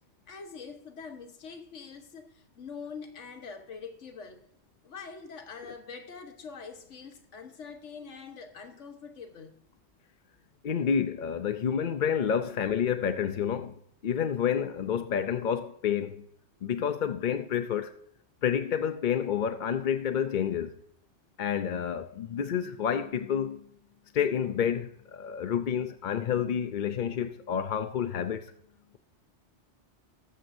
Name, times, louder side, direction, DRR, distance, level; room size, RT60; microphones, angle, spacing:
voice 1, 0.3-4.4 4.8-9.7, left 5 dB, 90° left, 1.4 m, -44 dB
voice 2, 10.6-13.7 14.0-16.2 16.6-17.9 18.4-20.7 21.4-23.6 24.1-28.5, left 8 dB, 55° left, 0.6 m, -29 dB
19.5 x 7.7 x 2.6 m
omnidirectional pair, 1.2 m